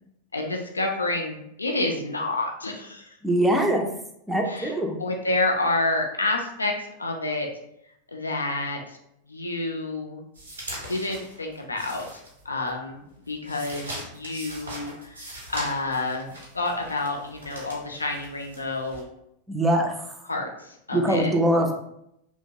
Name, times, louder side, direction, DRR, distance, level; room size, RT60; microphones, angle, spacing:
voice 1, 0.3-3.2 4.4-4.7 5.0-7.5 8.1-9.0 9.3-10.2 10.8-12.2 12.5-19.1 20.2-21.3, left 2 dB, 80° left, 2 dB, 0.4 m, -29 dB
voice 2, 3.2-3.9 4.3-5.0 19.5-20.1 20.9-21.7, right 1 dB, 10° right, 2 dB, 0.4 m, -22 dB
sound 1, 10.3-12.7 13.1-19.0, right 1 dB, 75° right, 1.1 m, -40 dB
2.8 x 2.2 x 2.6 m, 0.77 s
figure-of-eight pair, 90°, 0 cm